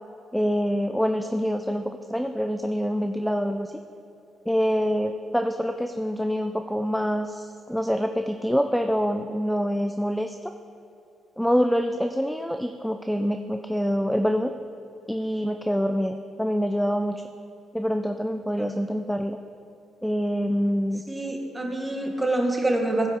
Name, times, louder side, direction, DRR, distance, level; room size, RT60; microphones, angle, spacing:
voice 1, 0.3-3.7 4.5-10.5 11.4-14.5 15.1-17.2 17.7-19.4 20.0-21.0, equal, ahead, 6 dB, 0.4 m, -26 dB
voice 2, 21.1-23.1, right 2 dB, 15° right, 1 dB, 1.7 m, -26 dB
15.5 x 5.2 x 5.2 m, 2.8 s
cardioid pair, 90°, 0 cm